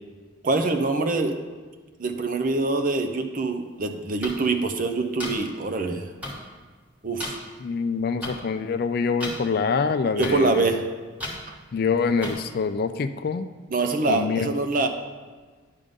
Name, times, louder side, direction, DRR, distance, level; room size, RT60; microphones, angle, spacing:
voice 1, 0.4-1.3 2.0-6.1 7.0-7.4 10.2-10.8 11.5-11.6 13.7-14.9, right 3 dB, 45° right, 6 dB, 0.6 m, -24 dB
sound 1, 4.2-4.3 5.2-5.3 6.2-6.3 7.2-7.3 8.2-8.3 9.2-9.3 10.2-10.3 11.2-11.3 12.2-12.3, left 1 dB, 10° right, 1.2 m, -32 dB
voice 2, 7.6-10.9 11.7-13.5 14.1-14.5, left 5 dB, 50° left, 11 dB, 0.3 m, -25 dB
10.5 x 3.7 x 5.3 m, 1.4 s
head